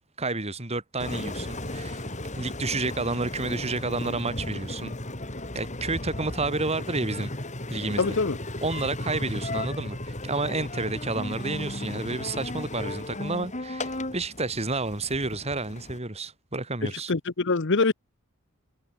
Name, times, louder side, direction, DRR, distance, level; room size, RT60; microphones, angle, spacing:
voice 1, 0.2-2.1 2.4-5.0 5.5-7.3 7.7-8.2 8.6-17.1, right 3 dB, 30° right, 2.2 m, -30 dB
Engine, 1.0-16.0, left 1 dB, 30° left, 5.8 m, -35 dB
voice 2, 8.0-8.4 16.8-17.9, left 3 dB, 55° left, 0.9 m, -24 dB
head